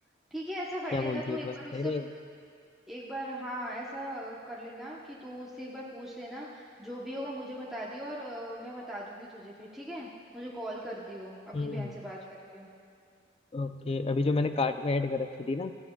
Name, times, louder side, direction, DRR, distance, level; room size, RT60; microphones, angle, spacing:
voice 1, 0.3-1.9 2.9-12.2 12.5-12.7, equal, ahead, -6 dB, 0.9 m, -39 dB
voice 2, 0.9-2.1 11.5-11.9 13.5-15.7, left 3 dB, 30° left, 9 dB, 0.4 m, -30 dB
18.0 x 14.5 x 2.3 m, 2.3 s
head